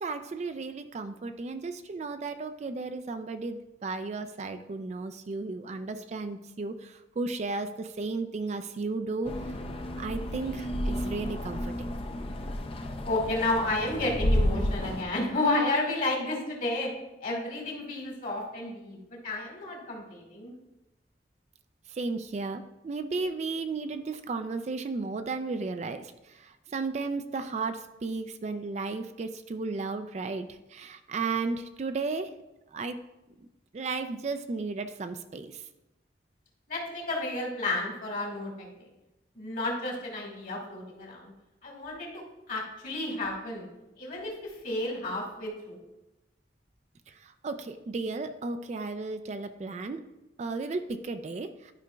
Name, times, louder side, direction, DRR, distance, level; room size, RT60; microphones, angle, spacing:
voice 1, 0.0-9.6 10.0-11.9 21.9-32.3 32.7-33.0 33.4-33.5 33.7-35.6 47.1-50.0 50.4-51.7, right 3 dB, 40° right, 9 dB, 0.3 m, -34 dB
sound 1, 9.2-15.0, left 1 dB, 30° left, 0.5 m, -31 dB
voice 2, 13.0-16.9 17.2-20.5 36.7-38.7 39.4-41.3 41.6-43.7 44.0-45.8, left 2 dB, 50° left, -1 dB, 1.8 m, -31 dB
11.5 x 5.0 x 2.3 m, 0.98 s
head